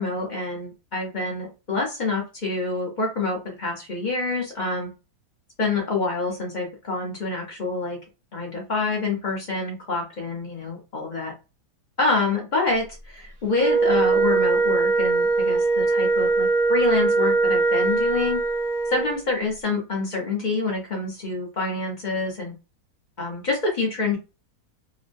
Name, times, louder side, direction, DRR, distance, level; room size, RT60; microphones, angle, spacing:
voice 1, 0.0-4.9 5.6-8.0 8.3-11.3 12.0-18.4 18.9-22.6 23.2-24.2, left 3 dB, 45° left, -1 dB, 0.6 m, -27 dB
Wind instrument woodwind instrument, 13.5-19.2, right 3 dB, 35° right, 0.7 m, -21 dB
3.1 x 2.1 x 2.6 m, 0.29 s
omnidirectional pair, 1.8 m